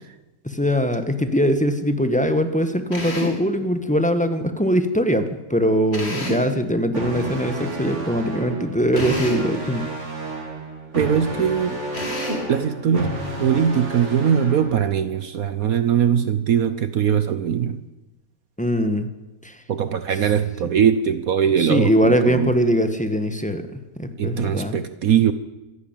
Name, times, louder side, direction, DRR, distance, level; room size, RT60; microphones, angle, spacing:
voice 1, 0.4-9.8 18.6-19.1 19.4-19.5 21.7-24.8, equal, 5° left, 8 dB, 1.3 m, -21 dB
Drill, 2.9-3.5 5.9-6.6 8.9-9.5 11.9-12.5, left 1 dB, 35° left, 3.4 m, -29 dB
sound 1, 6.9-14.9, right 2 dB, 45° right, 3.1 m, -31 dB
voice 2, 10.9-11.8 12.5-13.1 13.4-17.8 19.7-22.5 24.2-25.3, right 8 dB, 60° right, 12 dB, 1.2 m, -21 dB
26.0 x 11.0 x 9.0 m, 1.0 s
omnidirectional pair, 1.8 m